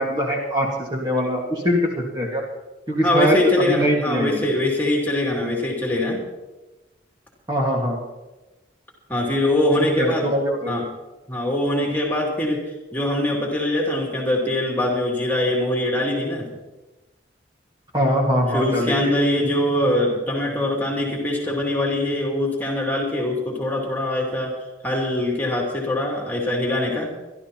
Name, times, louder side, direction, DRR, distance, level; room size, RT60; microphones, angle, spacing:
voice 1, 0.0-2.4 2.9-3.4 3.7-4.4 7.5-8.0 10.0-10.8 17.9-19.1, equal, 20° right, -3 dB, 1.7 m, -22 dB
voice 2, 3.0-6.2 9.1-10.3 10.7-10.9 11.3-12.6 12.9-16.5 18.5-24.5 24.8-27.1, left 1 dB, 10° left, -2 dB, 2.5 m, -23 dB
24.5 x 12.0 x 2.9 m, 1.1 s
head